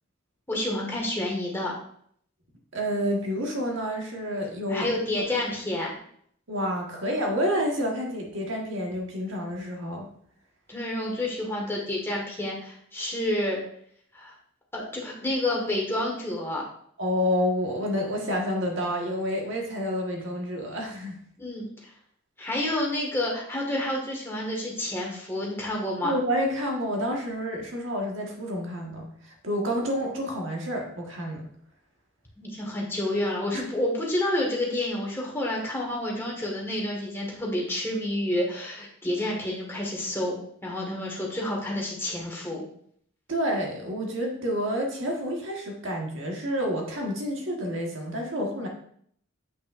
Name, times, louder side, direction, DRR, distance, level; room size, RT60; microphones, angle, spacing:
voice 1, 0.5-1.7 4.7-5.9 10.7-13.6 14.1-14.3 14.7-16.6 21.4-21.7 22.4-26.2 32.4-42.6, left 1 dB, 10° left, -2 dB, 1.7 m, -29 dB
voice 2, 2.7-4.9 5.1-5.3 6.5-10.1 17.0-21.2 26.0-31.4 33.5-33.6 43.3-48.7, equal, 65° right, 0 dB, 1.5 m, -29 dB
8.0 x 5.9 x 2.5 m, 0.64 s
head